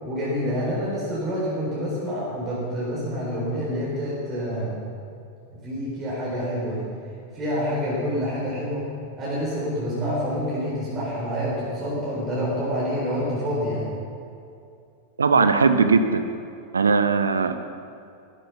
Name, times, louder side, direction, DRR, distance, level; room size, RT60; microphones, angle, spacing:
voice 1, 0.0-4.8 5.6-6.9 7.3-8.9 9.2-13.9, equal, 25° right, -6 dB, 4.3 m, -27 dB
voice 2, 15.2-16.2 16.7-17.5, right 4 dB, 75° right, 10 dB, 0.6 m, -19 dB
15.5 x 11.0 x 5.7 m, 2.5 s
figure-of-eight pair, 90°, 0 cm